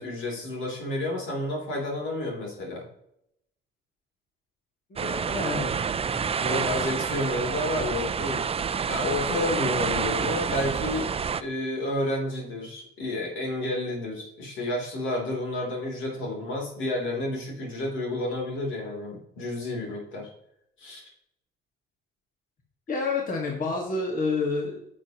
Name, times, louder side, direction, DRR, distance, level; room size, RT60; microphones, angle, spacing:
voice 1, 0.0-2.8 6.4-20.3 20.8-21.0, left 1 dB, 80° left, -1 dB, 3.3 m, -30 dB
voice 2, 4.9-6.7 22.9-24.9, left 3 dB, 45° left, 0 dB, 1.8 m, -30 dB
sound 1, 5.0-11.4, right 6 dB, 30° right, 0.4 m, -28 dB
9.6 x 6.7 x 3.0 m, 0.78 s
cardioid pair, 90°, 20 cm